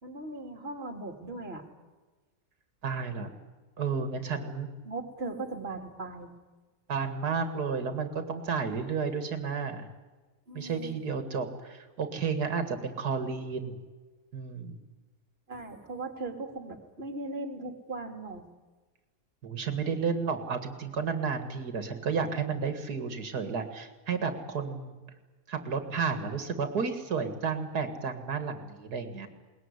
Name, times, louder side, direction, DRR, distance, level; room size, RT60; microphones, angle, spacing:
voice 1, 0.0-1.6 4.9-6.3 10.5-10.9 15.5-18.4, right 3 dB, 40° right, 4 dB, 2.9 m, -38 dB
voice 2, 2.8-3.3 3.8-4.7 6.9-9.9 10.5-13.8 14.3-14.8 19.4-24.9 25.5-29.3, right 5 dB, 85° right, 8 dB, 2.4 m, -32 dB
21.5 x 20.0 x 9.7 m, 1.3 s
omnidirectional pair, 1.6 m